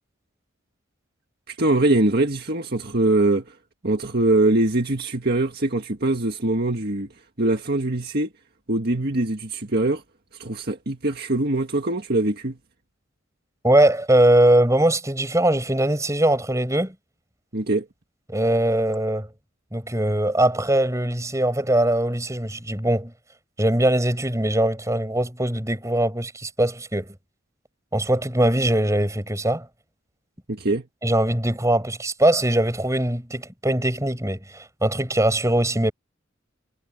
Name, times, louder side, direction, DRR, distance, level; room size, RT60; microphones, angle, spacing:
voice 1, 1.5-3.5 3.8-7.1 7.4-8.3 8.7-10.0 10.4-12.6 17.5-17.9 30.5-30.8, right 2 dB, 50° right, 1.8 m, -22 dB
voice 2, 13.6-16.9 18.3-19.3 19.7-23.1 23.6-27.1 27.9-29.7 31.0-35.9, right 1 dB, 15° right, 7.5 m, -21 dB
head